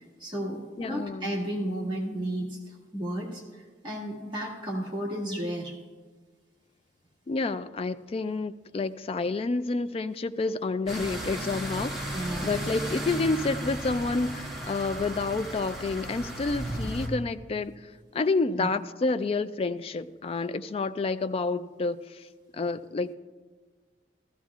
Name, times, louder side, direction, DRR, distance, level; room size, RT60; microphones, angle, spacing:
voice 1, 0.2-5.7 12.1-12.6 18.6-18.7, right 1 dB, 25° right, -3 dB, 1.8 m, -33 dB
voice 2, 0.8-1.4 7.3-17.7 18.1-22.2 22.5-23.1, left 3 dB, 35° left, 12 dB, 0.3 m, -29 dB
sound 1, 10.9-17.1, right 1 dB, 5° right, 1.7 m, -35 dB
14.5 x 14.5 x 2.4 m, 1.4 s
head